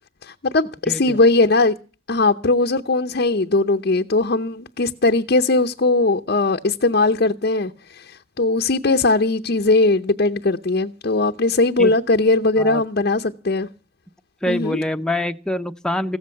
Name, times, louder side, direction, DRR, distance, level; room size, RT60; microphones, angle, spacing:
voice 1, 0.2-1.7 2.1-13.7 14.5-14.8, left 2 dB, 50° left, 0.7 m, -19 dB
voice 2, 0.9-1.2 11.8-11.9 12.6-12.8 14.4-16.2, left 1 dB, 5° left, 0.7 m, -25 dB
16.0 x 14.0 x 5.7 m
head